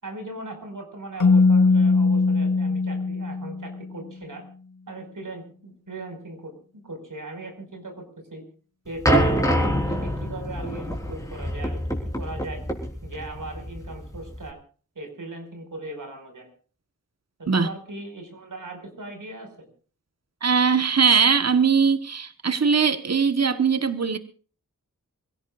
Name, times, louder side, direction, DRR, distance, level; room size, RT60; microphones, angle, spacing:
voice 1, 0.0-4.4 4.9-6.5 6.8-8.0 8.3-8.4 8.8-11.8 12.2-12.6 13.0-14.6 14.9-16.5 17.4-19.7, right 2 dB, 75° right, 5.1 m, -38 dB
Keyboard (musical), 1.2-3.9, left 4 dB, 70° left, 1.5 m, -20 dB
sound 1, 9.0-14.5, equal, 10° left, 3.8 m, -25 dB
voice 2, 20.4-24.2, right 6 dB, 50° right, 1.2 m, -20 dB
27.0 x 16.5 x 2.4 m
wide cardioid pair, 85°, 32 cm